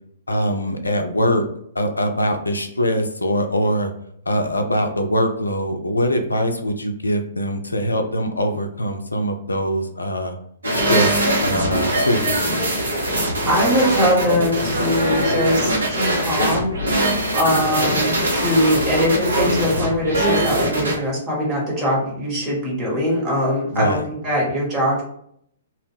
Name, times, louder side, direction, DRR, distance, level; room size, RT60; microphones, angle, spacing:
voice 1, 0.3-1.4 1.8-3.9 4.3-10.3 10.7-12.5 17.5-18.0 23.7-24.0, equal, 75° left, 5 dB, 0.3 m, -22 dB
sound 1, 10.6-20.9, right 1 dB, 70° right, 0.7 m, -21 dB
voice 2, 13.5-16.7 17.3-25.0, equal, 20° right, -4 dB, 1.0 m, -21 dB
2.1 x 2.0 x 3.2 m, 0.69 s
figure-of-eight pair, 115°, 0 cm